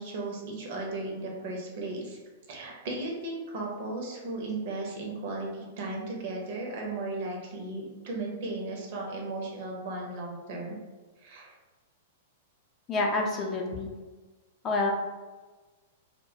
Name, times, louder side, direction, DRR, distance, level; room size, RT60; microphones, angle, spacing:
voice 1, 0.0-2.2 2.5-10.8 11.2-11.5, right 2 dB, 55° right, -1 dB, 0.6 m, -36 dB
voice 2, 12.9-13.9 14.6-14.9, left 2 dB, 30° left, 0 dB, 0.4 m, -28 dB
2.2 x 2.1 x 2.8 m, 1.3 s
figure-of-eight pair, 100°, 0 cm